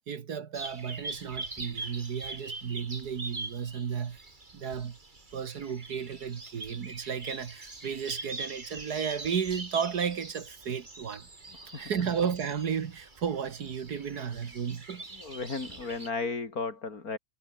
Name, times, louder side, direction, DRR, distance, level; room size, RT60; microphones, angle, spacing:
voice 1, 0.1-4.2 4.5-5.0 5.3-11.3 11.7-15.0, right 7 dB, 75° right, 2.0 m, -33 dB
sound 1, 0.5-16.1, right 3 dB, 30° right, 2.7 m, -43 dB
voice 2, 15.1-17.2, left 4 dB, 65° left, 3.6 m, -35 dB
omnidirectional pair, 1.7 m